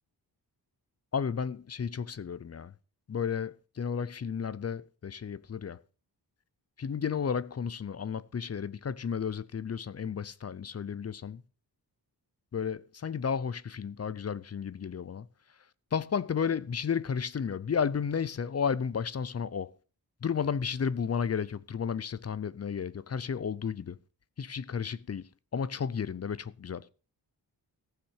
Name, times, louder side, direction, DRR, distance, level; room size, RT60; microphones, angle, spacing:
voice 1, 1.1-2.7 3.1-5.8 6.8-11.4 12.5-15.3 15.9-19.7 20.2-24.0 24.4-26.9, left 6 dB, 40° left, 0.5 m, -33 dB
15.0 x 5.8 x 6.4 m
wide cardioid pair, 140°, 41 cm